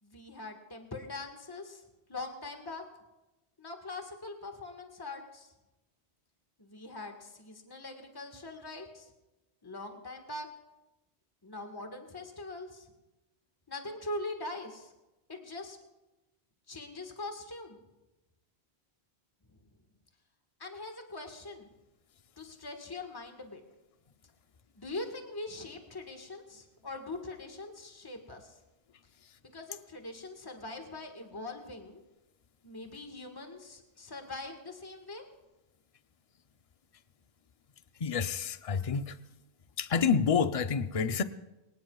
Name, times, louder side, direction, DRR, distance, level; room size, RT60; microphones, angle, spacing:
voice 1, 0.0-1.8 2.1-2.8 3.6-5.5 6.6-9.1 9.6-10.5 11.4-12.9 13.7-14.9 15.3-15.8 16.7-17.8 19.5-19.7 20.6-21.7 22.4-23.6 24.8-28.6 29.5-32.0 32.6-35.2, left 2 dB, 20° left, 1.6 m, -42 dB
voice 2, 38.0-39.2 39.8-41.2, left 6 dB, 40° left, 0.7 m, -28 dB
24.5 x 18.5 x 2.4 m
omnidirectional pair, 1.1 m